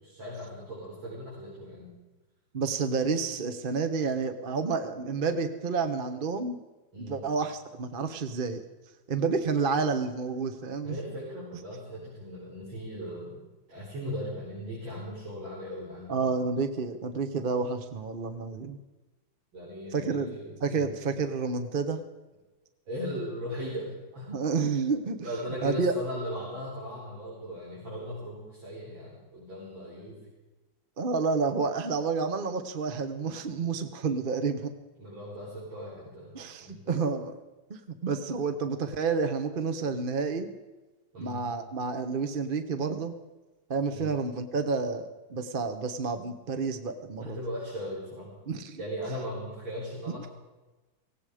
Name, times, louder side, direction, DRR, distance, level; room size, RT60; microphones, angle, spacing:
voice 1, 0.0-1.9 6.9-7.2 10.8-13.4 13.7-16.2 19.5-20.9 22.9-24.4 25.2-30.2 35.0-36.3 36.6-36.8 41.1-41.4 43.9-44.1 47.2-48.3 48.8-50.3, equal, 80° right, -8 dB, 5.4 m, -38 dB
voice 2, 2.5-6.6 7.0-8.6 9.1-11.0 16.1-18.8 19.9-20.3 20.6-22.0 24.3-25.2 25.6-25.9 31.0-34.7 36.3-37.3 37.7-40.5 41.2-43.2 43.7-47.4 48.5-48.8, right 4 dB, 40° right, 7 dB, 0.8 m, -30 dB
17.0 x 17.0 x 4.9 m, 1.2 s
omnidirectional pair, 2.1 m